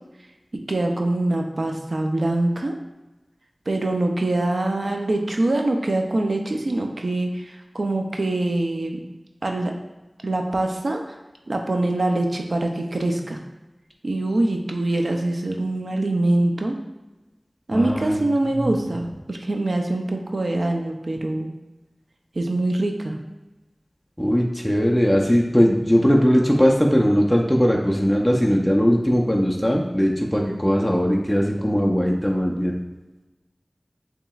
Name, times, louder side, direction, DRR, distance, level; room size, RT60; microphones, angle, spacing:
voice 1, 0.7-2.7 3.7-9.0 9.4-9.7 10.2-11.1 11.5-13.4 14.0-16.8 17.7-21.5 22.3-23.2, right 2 dB, 80° right, 3 dB, 0.5 m, -24 dB
voice 2, 17.7-18.2 18.5-18.7 24.2-32.7, equal, 5° left, -1 dB, 0.6 m, -19 dB
7.1 x 2.9 x 2.3 m, 1.1 s
wide cardioid pair, 60°, 0 cm